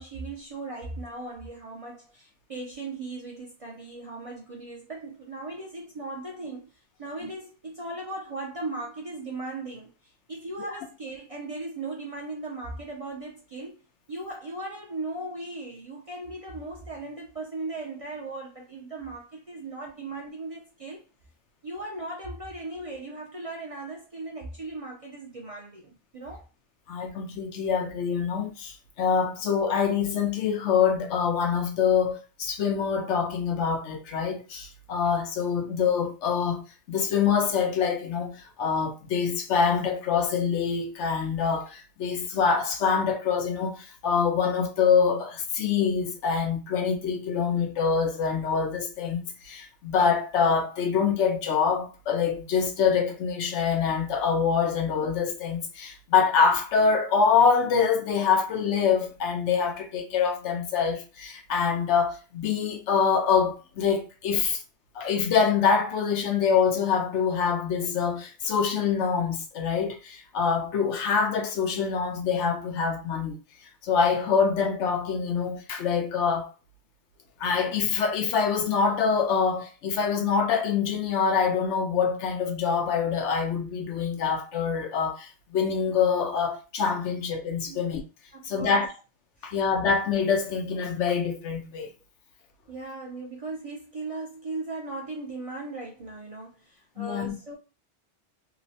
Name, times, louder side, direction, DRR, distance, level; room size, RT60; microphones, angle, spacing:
voice 1, 0.0-6.7 7.0-13.8 14.1-21.1 21.6-26.5 87.7-87.8 88.3-88.8 89.4-89.5 92.7-97.6, right 2 dB, 45° right, 0.4 m, -38 dB
voice 2, 26.9-36.6 36.9-64.6 64.9-73.4 73.8-76.5 77.4-88.0 88.4-88.9 89.4-91.9 97.0-97.3, left 6 dB, 85° left, 0.9 m, -25 dB
2.9 x 2.0 x 2.7 m
omnidirectional pair, 1.2 m